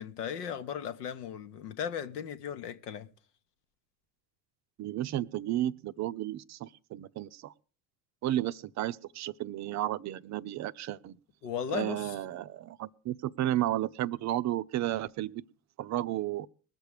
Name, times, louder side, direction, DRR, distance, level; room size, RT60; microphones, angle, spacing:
voice 1, 0.0-3.1 11.4-12.2, left 8 dB, 75° left, 0.9 m, -36 dB
voice 2, 4.8-7.5 8.2-11.2 11.7-15.4 15.8-16.5, right 13 dB, 40° right, 0.5 m, -33 dB
20.5 x 6.8 x 4.8 m
figure-of-eight pair, 60°, 47 cm